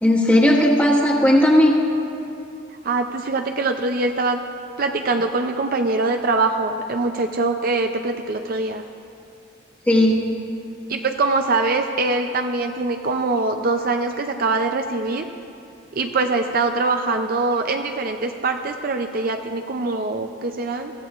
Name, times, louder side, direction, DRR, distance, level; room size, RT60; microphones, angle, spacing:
voice 1, 0.0-1.7 9.9-10.2, left 1 dB, 10° left, -4 dB, 1.5 m, -16 dB
voice 2, 2.8-4.4 4.8-8.8 10.9-15.3 15.9-20.9, right 3 dB, 45° right, 5 dB, 0.5 m, -23 dB
22.5 x 15.0 x 2.4 m, 2.6 s
head